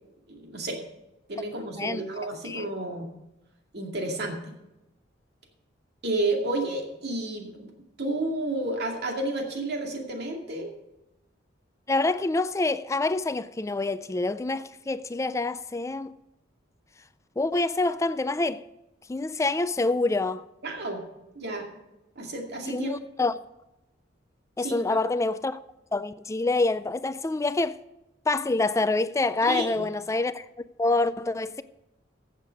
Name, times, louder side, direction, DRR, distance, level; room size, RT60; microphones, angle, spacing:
voice 1, 0.3-0.8 1.3-3.1 3.7-4.5 6.0-7.7 8.0-10.7 20.6-21.0 21.3-21.7 22.2-22.9 24.6-24.8 29.4-29.9, right 2 dB, 60° right, 2.3 m, -31 dB
voice 2, 11.9-16.1 17.4-18.6 19.1-20.4 22.7-23.3 24.6-25.6 25.9-27.8 28.3-30.5 30.8-31.6, left 2 dB, 15° left, 0.4 m, -26 dB
14.5 x 7.4 x 5.2 m
head